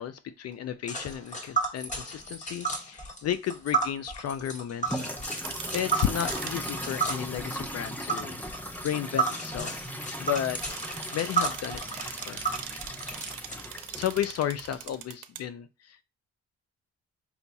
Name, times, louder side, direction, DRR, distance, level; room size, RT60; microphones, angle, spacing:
voice 1, 0.0-5.1 5.7-8.4 8.8-9.9 10.2-12.5 13.9-16.0, left 10 dB, 55° left, 0.5 m, -33 dB
Tick, 0.9-13.5, right 4 dB, 25° left, 1.6 m, -33 dB
sound 1, 4.8-15.0, equal, 5° left, 0.7 m, -38 dB
sound 2, 5.3-6.7 10.1-15.4, right 11 dB, 85° right, 0.6 m, -42 dB
5.6 x 2.3 x 4.1 m
cardioid pair, 90°, 30 cm